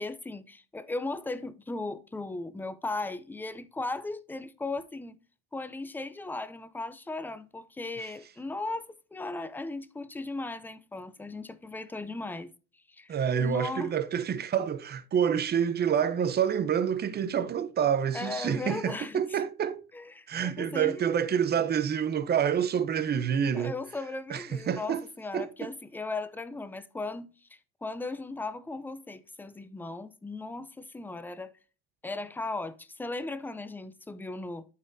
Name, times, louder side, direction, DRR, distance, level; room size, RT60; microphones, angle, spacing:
voice 1, 0.0-5.2 5.5-12.5 12.9-13.9 18.1-19.4 19.9-21.1 23.5-27.5 27.8-31.5 32.0-34.6, left 2 dB, 5° left, 0.4 m, -37 dB
voice 2, 13.1-19.8 20.3-23.7 24.3-25.0 25.3-25.7, right 8 dB, 30° right, 0.7 m, -28 dB
12.0 x 4.1 x 2.7 m
cardioid pair, 115°, 32 cm